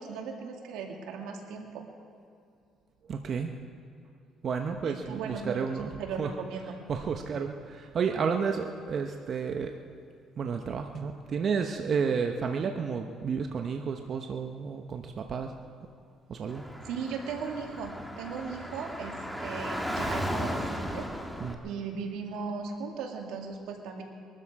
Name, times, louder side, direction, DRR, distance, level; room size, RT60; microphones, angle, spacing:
voice 1, 0.0-1.8 4.8-5.7 6.0-6.8 16.8-21.1 21.6-24.0, right 5 dB, 85° right, 2 dB, 2.2 m, -37 dB
voice 2, 3.1-3.5 4.4-5.9 6.2-6.3 6.9-9.7 10.4-15.5 16.3-16.7 21.4-21.6, right 6 dB, 50° right, 5 dB, 1.0 m, -31 dB
Car / Traffic noise roadway noise, 16.5-21.5, equal, ahead, 1.7 m, -35 dB
22.5 x 13.0 x 4.8 m, 2.5 s
cardioid pair, 95°, 0 cm